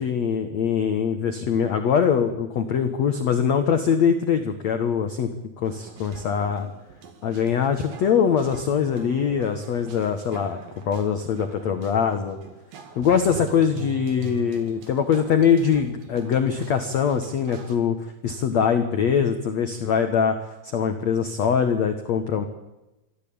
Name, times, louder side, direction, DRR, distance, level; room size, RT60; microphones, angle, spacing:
voice 1, 0.0-5.3 5.6-6.7 7.2-10.6 10.9-12.4 13.0-22.5, left 7 dB, 60° left, 7 dB, 1.8 m, -23 dB
sound 1, 5.6-17.8, right 5 dB, 55° right, 3.6 m, -43 dB
24.5 x 15.0 x 8.7 m, 1.0 s
omnidirectional pair, 5.1 m